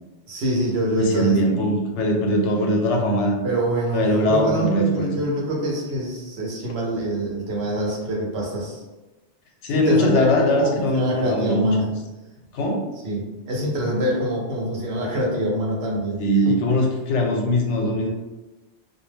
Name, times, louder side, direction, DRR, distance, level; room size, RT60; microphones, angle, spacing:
voice 1, 0.3-1.4 3.4-8.8 9.7-11.9 13.0-13.2 13.5-16.5, equal, 70° right, -2 dB, 0.9 m, -25 dB
voice 2, 1.0-3.4 3.9-5.1 9.6-11.7 12.5-12.8 16.2-18.1, equal, 85° left, 1 dB, 0.9 m, -21 dB
2.2 x 2.2 x 3.2 m, 1.1 s
omnidirectional pair, 1.2 m